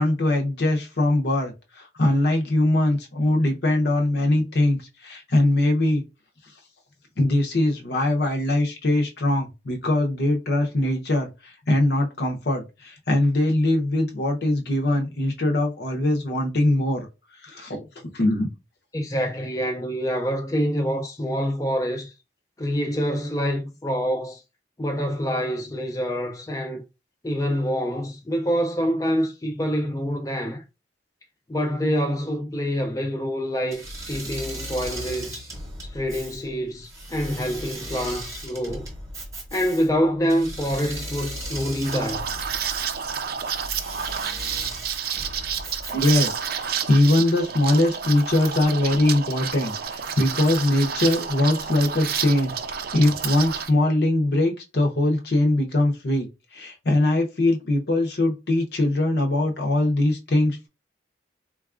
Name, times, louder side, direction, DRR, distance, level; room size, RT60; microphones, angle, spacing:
voice 1, 0.0-6.0 7.2-17.1 17.4-18.5 45.9-56.3 56.5-60.7, left 1 dB, 60° left, 0.7 m, -22 dB
voice 2, 18.9-22.1 22.6-24.4 24.8-26.9 27.2-30.6 31.5-35.5 35.8-38.9 39.5-42.3, equal, 20° left, 0.4 m, -26 dB
Engine / Mechanisms, 33.7-46.6, right 1 dB, 20° right, 0.9 m, -37 dB
Liquid, 41.8-53.7, right 7 dB, 55° right, 0.4 m, -30 dB
3.9 x 2.3 x 2.4 m
head